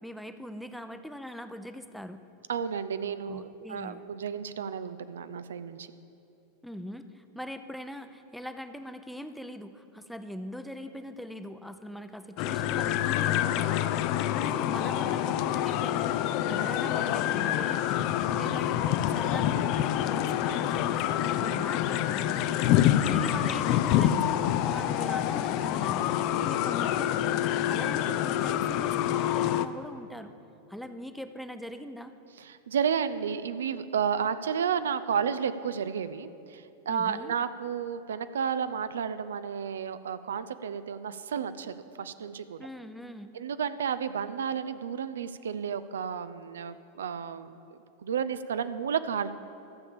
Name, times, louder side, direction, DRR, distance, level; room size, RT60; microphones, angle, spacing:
voice 1, 0.0-2.2 3.3-4.0 6.6-14.0 14.4-22.5 23.0-27.4 27.7-30.3 30.7-32.1 36.9-37.3 42.6-43.3, equal, ahead, 9 dB, 0.6 m, -41 dB
voice 2, 2.5-5.9 22.6-22.9 32.4-42.7 43.3-47.5 48.0-49.3, right 7 dB, 70° right, 12 dB, 0.4 m, -32 dB
sound 1, 12.4-29.7, left 11 dB, 45° left, 0.4 m, -27 dB
13.0 x 7.1 x 7.0 m, 2.7 s
figure-of-eight pair, 90°, 0 cm